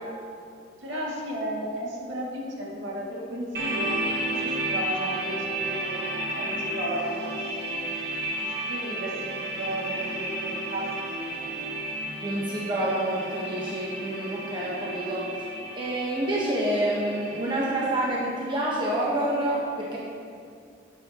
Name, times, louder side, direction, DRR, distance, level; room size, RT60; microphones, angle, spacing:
voice 1, 0.8-7.9 8.4-12.1 14.9-15.0, right 1 dB, 90° right, -5 dB, 2.2 m, -35 dB
sound 1, 3.5-18.1, right 1 dB, 60° right, 1.4 m, -32 dB
voice 2, 12.2-15.5 15.7-20.0, right 1 dB, 25° right, -5 dB, 1.1 m, -28 dB
10.5 x 9.3 x 2.9 m, 2.4 s
head